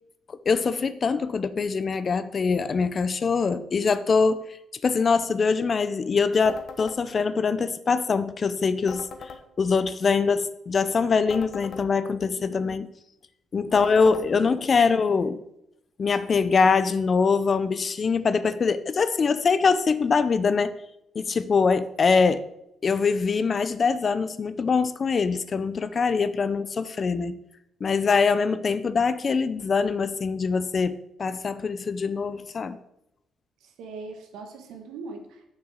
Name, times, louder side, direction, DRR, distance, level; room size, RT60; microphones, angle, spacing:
voice 1, 0.3-4.4 4.7-9.3 9.6-12.9 13.5-15.4 16.0-20.7 21.1-22.4 22.8-27.4 27.8-32.8, left 5 dB, 40° left, 0.6 m, -23 dB
sound 1, 6.4-7.0 8.9-9.4 11.3-11.8 13.7-14.3, left 5 dB, 60° left, 1.2 m, -40 dB
voice 2, 12.3-12.8 13.6-15.3 33.6-35.5, right 4 dB, 85° right, 1.6 m, -42 dB
7.2 x 6.3 x 6.4 m
cardioid pair, 90°, 0 cm